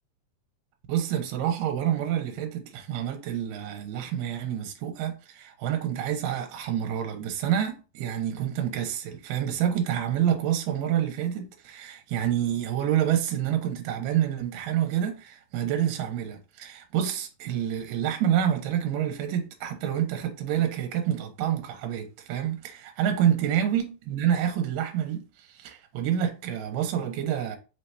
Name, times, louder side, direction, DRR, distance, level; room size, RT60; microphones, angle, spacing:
voice 1, 0.9-27.6, right 10 dB, 75° right, 2.3 m, -28 dB
5.1 x 2.9 x 3.3 m
omnidirectional pair, 4.0 m